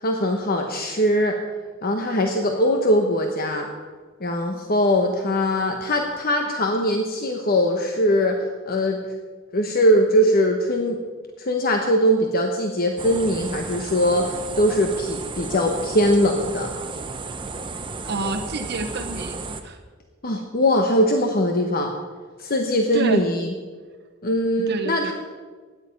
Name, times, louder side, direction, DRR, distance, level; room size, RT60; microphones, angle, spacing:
voice 1, 0.0-1.4 1.8-3.7 4.2-8.4 8.7-9.0 9.5-11.0 11.4-16.7 20.2-21.9 22.4-23.5 24.2-25.1, equal, 45° left, 4 dB, 1.1 m, -21 dB
sound 1, 13.0-19.6, right 3 dB, 25° right, 0.9 m, -33 dB
voice 2, 18.0-19.4 19.6-19.8 22.9-23.2 24.7-25.1, right 2 dB, 55° right, 4 dB, 1.1 m, -28 dB
16.5 x 10.5 x 5.3 m, 1.4 s
head